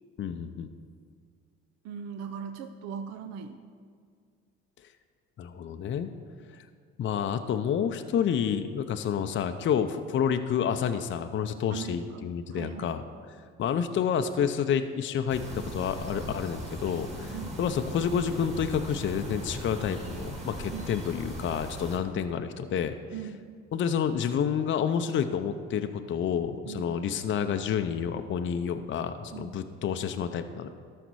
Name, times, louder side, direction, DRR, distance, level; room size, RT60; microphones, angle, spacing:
voice 1, 0.2-0.7 5.4-6.1 7.0-13.0 13.6-15.4 15.7-23.0 23.7-30.7, left 8 dB, 40° left, 8 dB, 0.6 m, -29 dB
voice 2, 1.8-3.6 11.7-12.2 12.5-12.9 17.3-17.6 20.7-20.9 23.1-23.5 26.6-26.9 29.3-29.6, right 7 dB, 60° right, 8 dB, 0.6 m, -39 dB
sound 1, 15.3-22.0, right 1 dB, 20° right, 2.2 m, -38 dB
13.0 x 5.8 x 4.7 m, 2.1 s
supercardioid pair, 75°, 30 cm